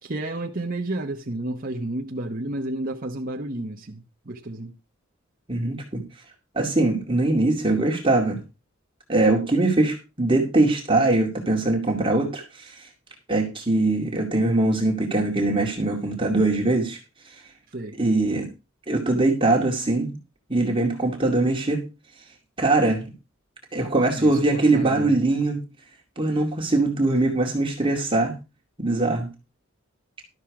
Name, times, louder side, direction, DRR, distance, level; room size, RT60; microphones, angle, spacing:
voice 1, 0.0-4.7 17.7-18.0 24.1-25.2, right 2 dB, 45° right, 1.0 m, -31 dB
voice 2, 5.5-6.0 6.5-8.4 9.1-12.9 13.3-17.0 18.0-18.5 18.9-20.1 20.5-21.8 22.6-23.1 23.7-25.6 26.2-28.4 28.8-29.3, right 2 dB, 25° right, 2.3 m, -22 dB
12.5 x 7.4 x 4.8 m
head